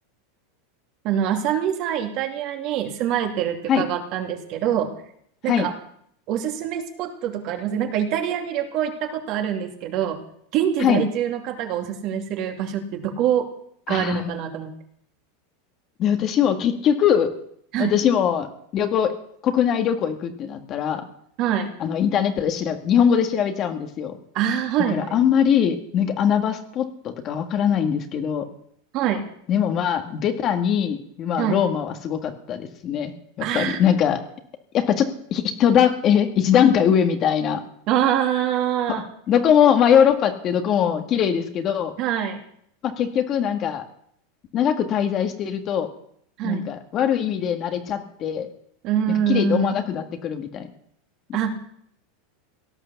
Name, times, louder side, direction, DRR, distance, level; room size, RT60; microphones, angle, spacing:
voice 1, 1.0-4.9 5.4-5.7 6.3-10.2 10.5-13.5 13.9-14.7 17.7-17.9 21.4-21.7 24.3-25.2 28.9-29.2 31.4-31.6 33.4-33.8 37.9-39.1 42.0-42.4 46.4-46.7 48.8-49.8 51.3-51.6, right 9 dB, 45° right, 4 dB, 2.6 m, -24 dB
voice 2, 13.9-14.3 16.0-17.3 17.8-18.5 18.7-19.1 19.4-21.0 21.8-24.2 24.9-28.5 29.5-33.1 33.5-34.2 34.7-37.6 39.3-41.9 42.8-43.8 44.5-45.9 46.4-48.5 49.3-50.7, left 8 dB, 35° left, 6 dB, 1.8 m, -21 dB
17.5 x 11.0 x 7.1 m, 0.68 s
supercardioid pair, 145°, 0 cm